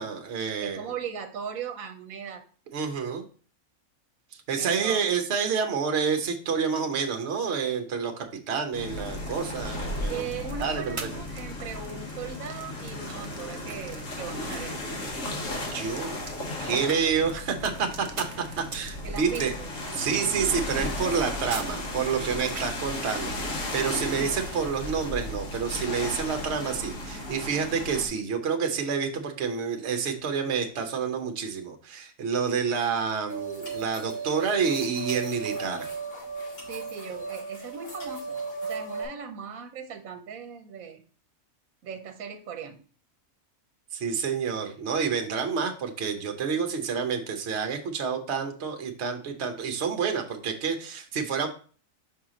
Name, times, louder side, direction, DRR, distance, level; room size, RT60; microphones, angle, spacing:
voice 1, 0.0-0.8 2.7-3.2 4.5-10.3 10.6-11.2 15.7-16.1 16.6-18.2 18.6-19.5 19.9-35.9 43.9-51.5, right 6 dB, 55° right, 5 dB, 1.1 m, -28 dB
voice 2, 0.6-2.4 4.6-5.1 10.1-14.8 19.0-19.7 36.7-41.0 41.8-42.8, right 7 dB, 80° right, 6 dB, 1.2 m, -38 dB
sound 1, 8.7-28.1, left 1 dB, 70° left, 1.7 m, -35 dB
sound 2, 8.9-22.8, right 4 dB, 35° right, 0.6 m, -45 dB
sound 3, 33.3-39.1, right 4 dB, 45° left, 3.7 m, -36 dB
5.6 x 4.7 x 3.7 m, 0.40 s
omnidirectional pair, 1.4 m